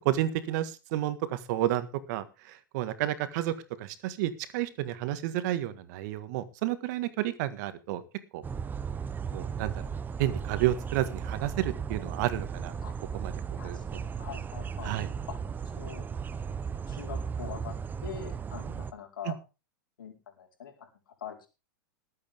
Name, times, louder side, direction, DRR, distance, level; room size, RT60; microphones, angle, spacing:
voice 1, 0.0-8.0 8.3-8.4 9.3-9.8 10.2-12.7 13.1-13.8 14.8-15.1 19.2-19.3, right 13 dB, 55° right, 12 dB, 1.8 m, -31 dB
sound 1, 8.4-18.9, right 6 dB, 15° right, 0.7 m, -36 dB
voice 2, 14.2-14.9 15.3-15.4 15.7-16.0 16.9-17.7 18.0-19.3 20.0-20.9 21.2-21.5, left 8 dB, 80° left, 1 dB, 4.5 m, -42 dB
20.0 x 8.6 x 3.6 m, 0.30 s
hypercardioid pair, 120°, 11 cm